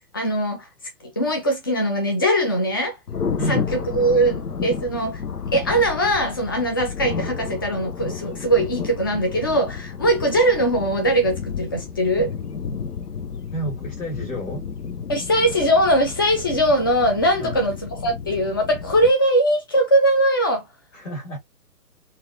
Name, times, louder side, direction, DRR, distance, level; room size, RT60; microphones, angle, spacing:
voice 1, 0.1-0.7 1.0-3.0 3.5-5.2 5.5-12.3 15.1-20.6, right 1 dB, 15° left, 0.4 m, -21 dB
Thunder, 3.1-19.1, left 6 dB, 75° left, 0.8 m, -31 dB
voice 2, 3.4-4.1 13.5-14.6 17.4-17.6 20.9-21.4, equal, 55° left, 1.9 m, -30 dB
3.9 x 2.5 x 2.6 m
figure-of-eight pair, 125°, 46 cm